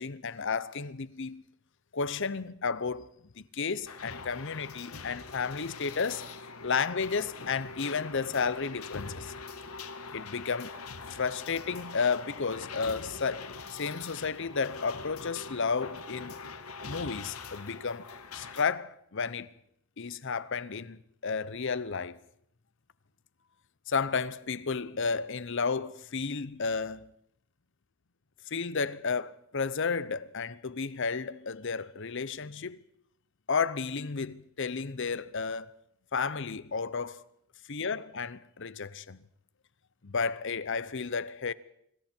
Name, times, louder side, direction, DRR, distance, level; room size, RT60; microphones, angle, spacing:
voice 1, 0.0-1.4 1.9-3.1 3.4-6.2 6.6-9.3 10.1-10.8 11.1-16.3 16.8-18.1 18.3-19.5 20.0-22.2 23.9-27.1 28.5-32.8 33.5-35.7 36.1-37.2 37.7-39.2 40.0-41.5, left 5 dB, 55° left, 0.8 m, -32 dB
sound 1, 3.9-18.6, left 4 dB, 80° left, 1.6 m, -43 dB
26.0 x 24.5 x 4.5 m
head